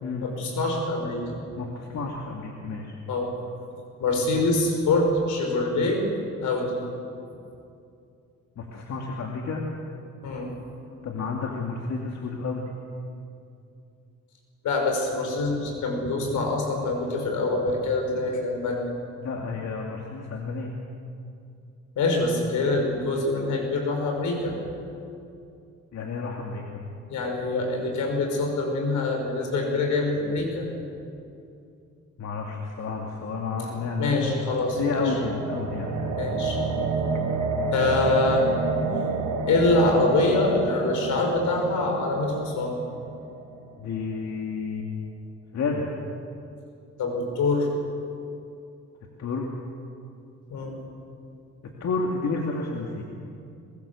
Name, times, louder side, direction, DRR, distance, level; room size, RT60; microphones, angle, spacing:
voice 1, 0.2-1.4 3.1-3.3 4.0-6.0 6.4-6.8 10.2-10.5 14.6-18.9 22.0-24.5 27.1-30.7 34.0-35.1 36.1-36.6 37.7-38.4 39.5-42.8 47.0-47.7 50.5-50.7, left 2 dB, 80° left, 2 dB, 6.0 m, -25 dB
voice 2, 1.6-2.9 8.6-9.6 11.0-12.6 19.2-20.7 25.9-26.7 32.2-34.3 34.8-36.2 43.8-44.9 45.5-45.8 49.2-49.5 51.8-53.0, left 4 dB, 60° left, 0 dB, 2.7 m, -30 dB
sound 1, 33.7-43.8, right 4 dB, 75° right, 2.8 m, -30 dB
23.0 x 22.0 x 7.3 m, 2.6 s
cardioid pair, 90°, 30 cm